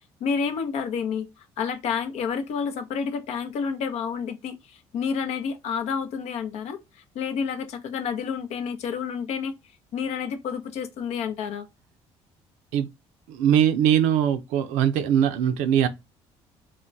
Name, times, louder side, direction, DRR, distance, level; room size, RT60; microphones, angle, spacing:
voice 1, 0.2-1.3 1.6-6.8 7.1-9.5 9.9-11.7, left 6 dB, 70° left, 0.6 m, -29 dB
voice 2, 13.3-15.9, right 9 dB, 90° right, 0.4 m, -21 dB
2.3 x 2.1 x 3.8 m
supercardioid pair, 85°, 12 cm